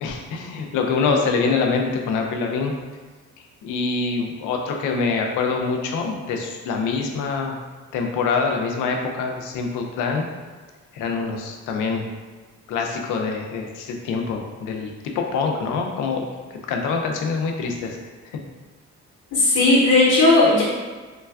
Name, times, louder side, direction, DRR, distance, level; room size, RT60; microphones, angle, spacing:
voice 1, 0.0-2.7 3.6-7.5 7.9-10.2 10.9-12.1 12.7-16.3 16.7-18.0, left 4 dB, 85° left, 2 dB, 0.5 m, -25 dB
voice 2, 19.3-20.6, left 2 dB, 55° left, -7 dB, 0.8 m, -15 dB
3.2 x 2.3 x 2.3 m, 1.4 s
cardioid pair, 90°, 30 cm